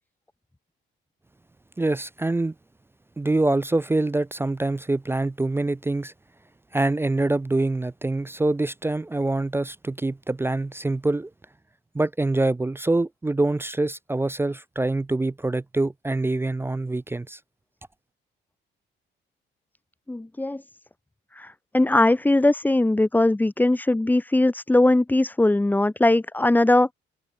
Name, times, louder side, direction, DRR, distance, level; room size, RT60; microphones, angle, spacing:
voice 1, 1.8-2.5 3.2-6.1 6.7-11.3 11.9-17.4, right 2 dB, 10° right, 0.4 m, -25 dB
voice 2, 20.1-20.6 21.4-26.9, left 2 dB, 10° left, 0.8 m, -20 dB
cardioid pair, 90°, 20 cm